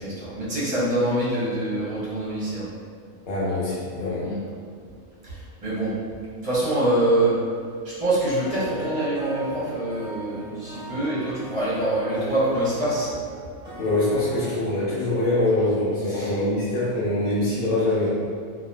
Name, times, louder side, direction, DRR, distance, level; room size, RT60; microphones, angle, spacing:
voice 1, 0.0-2.7 4.2-4.4 5.3-5.9 6.4-7.3 7.8-13.1 16.0-16.3, right 1 dB, 30° right, -10 dB, 0.8 m, -25 dB
voice 2, 3.3-4.3 13.8-18.2, left 1 dB, 85° left, -8 dB, 1.3 m, -24 dB
sound 1, 8.4-14.4, right 1 dB, 30° left, 0.9 m, -39 dB
2.9 x 2.5 x 2.2 m, 2.1 s
omnidirectional pair, 1.5 m